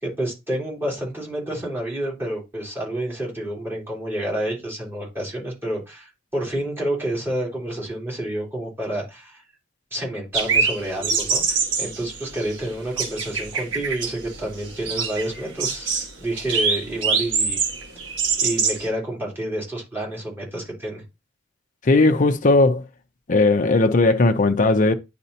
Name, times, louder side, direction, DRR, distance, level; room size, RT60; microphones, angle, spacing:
voice 1, 0.0-9.4 9.9-17.6 18.4-21.0, right 1 dB, 10° right, 3.5 m, -29 dB
sound 1, 10.3-18.9, right 5 dB, 75° right, 1.8 m, -25 dB
voice 2, 21.9-22.8 23.3-24.9, left 2 dB, 45° left, 0.6 m, -17 dB
9.8 x 4.2 x 2.8 m
head